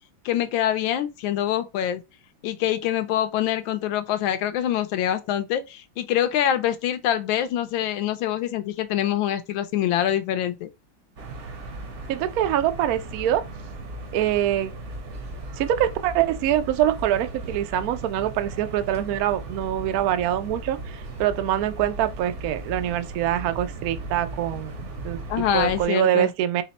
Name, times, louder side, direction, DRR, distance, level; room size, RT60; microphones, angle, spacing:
voice 1, 0.2-2.0 2.4-10.7 25.3-26.3, left 11 dB, 80° left, 1.4 m, -25 dB
sound 1, 11.2-25.8, right 2 dB, 55° right, 0.8 m, -37 dB
voice 2, 12.1-13.4 14.1-14.7 15.6-24.7 25.0-26.6, right 11 dB, 90° right, 0.8 m, -24 dB
4.1 x 2.1 x 4.0 m
omnidirectional pair, 2.2 m